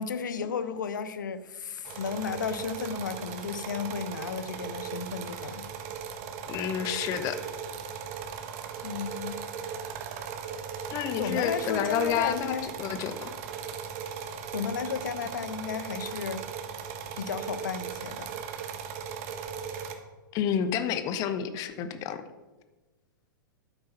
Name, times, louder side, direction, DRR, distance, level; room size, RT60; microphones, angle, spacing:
voice 1, 0.0-5.6 8.8-9.4 11.2-12.7 14.5-16.5 17.2-18.4, left 6 dB, 60° left, 12 dB, 1.0 m, -33 dB
sound 1, 1.8-19.9, right 7 dB, 40° right, 1.5 m, -38 dB
voice 2, 6.5-7.4 10.9-13.3 20.3-22.2, left 9 dB, 30° left, 11 dB, 1.0 m, -30 dB
11.5 x 8.8 x 5.6 m, 1.2 s
figure-of-eight pair, 100°, 11 cm